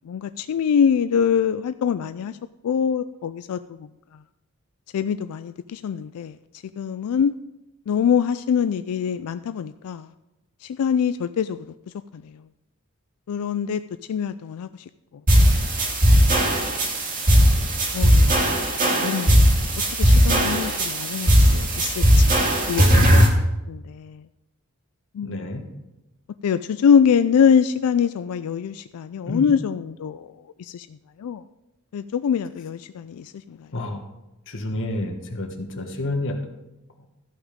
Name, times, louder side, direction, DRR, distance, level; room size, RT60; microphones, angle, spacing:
voice 1, 0.1-2.4 2.6-3.9 4.9-6.4 6.8-7.3 7.9-10.1 10.6-11.6 12.1-12.2 13.3-13.8 14.1-14.7 17.9-18.3 18.9-19.5 20.0-22.3 22.7-23.4 23.7-24.2 25.1-25.5 26.4-30.3 30.6-30.9 31.2-31.4 31.9-33.6, left 7 dB, 75° left, 0.3 m, -23 dB
sound 1, 15.3-23.3, equal, 40° right, 2.1 m, -18 dB
voice 2, 25.2-25.6 29.3-29.5 33.7-34.0 34.5-36.4, left 2 dB, 60° left, 1.4 m, -29 dB
14.0 x 6.0 x 5.1 m
head